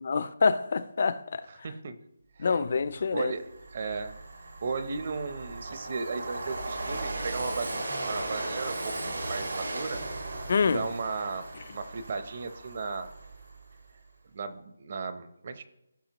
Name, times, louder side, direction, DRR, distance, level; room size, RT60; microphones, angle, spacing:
voice 1, 0.0-1.4 2.4-3.3 10.5-10.8, left 5 dB, 40° left, 0.5 m, -26 dB
voice 2, 1.5-2.0 2.4-2.6 3.0-4.2 4.6-10.0 10.6-13.1 14.3-15.6, right 4 dB, 35° right, 0.7 m, -35 dB
Train, 2.8-2.9 3.3-13.7, right 2 dB, 80° right, 2.8 m, -37 dB
15.0 x 5.7 x 2.9 m
hypercardioid pair, 175°, 0 cm